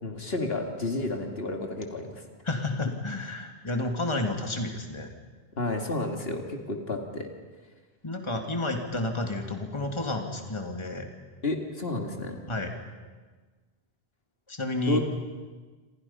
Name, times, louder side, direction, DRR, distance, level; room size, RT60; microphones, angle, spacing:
voice 1, 0.0-2.2 5.6-7.3 11.4-12.4 14.9-15.0, left 2 dB, 60° left, 3 dB, 2.5 m, -31 dB
voice 2, 2.4-5.1 8.0-11.1 12.5-12.7 14.5-15.0, left 2 dB, 25° left, 3 dB, 2.2 m, -31 dB
27.5 x 27.5 x 5.6 m, 1.4 s
omnidirectional pair, 1.1 m